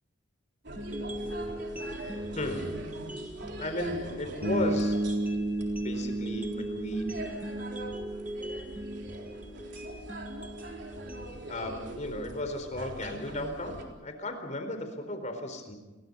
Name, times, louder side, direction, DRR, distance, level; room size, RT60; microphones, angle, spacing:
sound 1, 0.6-13.8, right 1 dB, 60° right, 4.0 m, -43 dB
sound 2, 0.8-12.8, equal, 10° right, 2.5 m, -40 dB
voice 1, 2.3-2.8 3.6-5.0 5.7-7.2 11.5-15.7, left 1 dB, 40° left, 7 dB, 4.3 m, -35 dB
Bass guitar, 4.4-8.5, right 1 dB, 85° right, 7.2 m, -32 dB
30.0 x 23.0 x 5.5 m, 1.2 s
head